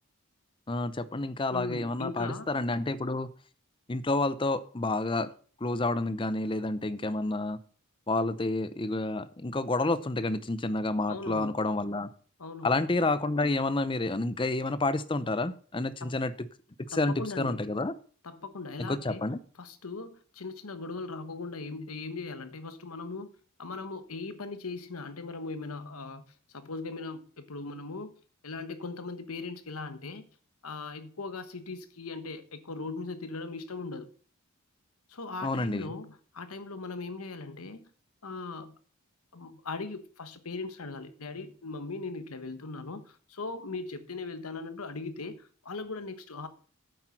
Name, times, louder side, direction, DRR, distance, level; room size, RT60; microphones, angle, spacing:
voice 1, 0.7-3.3 3.9-5.3 5.6-7.6 8.1-12.1 12.6-16.3 16.9-17.9 18.9-19.4 35.4-35.9, left 2 dB, 25° left, 0.6 m, -29 dB
voice 2, 1.5-2.5 11.1-11.6 12.4-12.8 16.0-16.2 16.9-17.6 18.2-19.2 19.6-23.3 23.6-28.2 28.4-30.2 30.6-34.1 35.1-37.9 38.2-38.7 39.3-46.5, left 3 dB, 85° left, 1.2 m, -39 dB
8.9 x 8.0 x 5.9 m
head